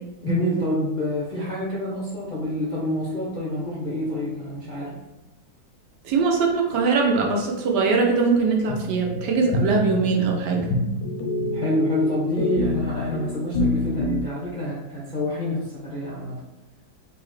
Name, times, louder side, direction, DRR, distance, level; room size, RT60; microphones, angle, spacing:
voice 1, 0.2-4.9 11.5-16.3, left 1 dB, 45° left, -6 dB, 0.6 m, -27 dB
voice 2, 6.0-10.7, right 4 dB, 75° right, 0 dB, 1.2 m, -21 dB
sound 1, 8.7-14.2, left 2 dB, 65° left, 0.9 m, -27 dB
4.1 x 2.7 x 3.1 m, 0.98 s
omnidirectional pair, 1.9 m